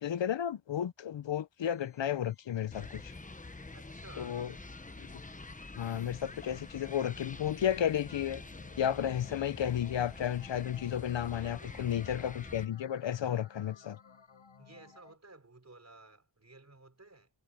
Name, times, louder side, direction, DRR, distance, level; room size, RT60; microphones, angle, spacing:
voice 1, 0.0-3.1 4.2-4.5 5.0-5.1 5.8-8.4 8.8-14.0, left 10 dB, 70° left, 0.7 m, -33 dB
Organ, 1.6-12.2, left 3 dB, 45° left, 5.0 m, -72 dB
sound 1, 2.7-12.7, left 3 dB, 15° left, 1.0 m, -47 dB
voice 2, 3.7-4.4 11.4-12.0 14.6-17.3, right 2 dB, 35° right, 5.3 m, -55 dB
sound 2, 8.0-15.2, left 5 dB, 85° left, 7.3 m, -58 dB
wide cardioid pair, 90°, 46 cm